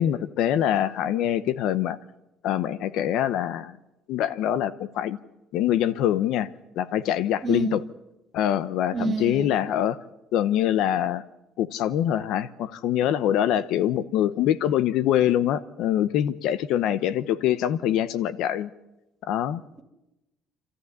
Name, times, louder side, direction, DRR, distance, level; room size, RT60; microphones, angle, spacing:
voice 1, 0.0-2.0 2.4-3.8 4.1-5.2 5.5-6.5 6.8-7.8 8.3-10.0 10.3-11.2 11.6-18.7 19.3-19.6, left 11 dB, 65° left, 0.8 m, -24 dB
voice 2, 7.4-7.7 8.9-9.6, right 5 dB, 25° right, 2.5 m, -29 dB
27.0 x 14.0 x 9.5 m
cardioid pair, 175°, 0 cm